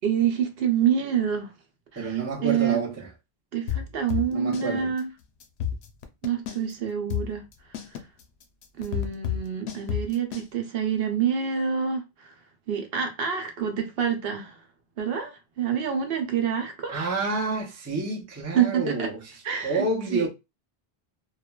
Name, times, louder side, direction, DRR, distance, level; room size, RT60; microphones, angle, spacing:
voice 1, 0.0-1.5 1.9-2.8 3.5-5.1 6.2-7.5 8.8-12.3 12.7-14.6 15.0-16.9 18.5-19.1 19.4-19.9 20.1-20.3, right 8 dB, 70° right, 0.8 m, -27 dB
voice 2, 2.0-3.1 4.1-4.9 16.9-19.2 19.6-20.3, right 3 dB, 20° right, 0.4 m, -29 dB
sound 1, 3.7-4.7 5.0-5.1 5.4-6.7 7.1-10.5, left 9 dB, 85° left, 0.8 m, -30 dB
3.0 x 2.1 x 2.2 m
omnidirectional pair, 1.1 m